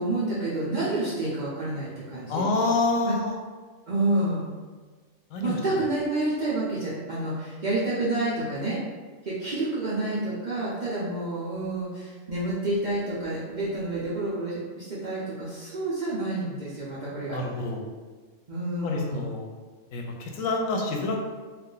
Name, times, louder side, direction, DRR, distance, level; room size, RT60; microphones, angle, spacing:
voice 1, 0.0-2.4 3.0-3.1 3.9-4.5 5.4-8.8 9.2-17.4 18.5-19.3, right 2 dB, 55° right, -9 dB, 0.5 m, -29 dB
voice 2, 2.3-3.4 5.3-5.6 17.3-17.9 18.8-19.5 19.9-21.2, left 3 dB, 85° left, 1 dB, 1.0 m, -27 dB
2.5 x 2.4 x 3.7 m, 1.4 s
omnidirectional pair, 1.3 m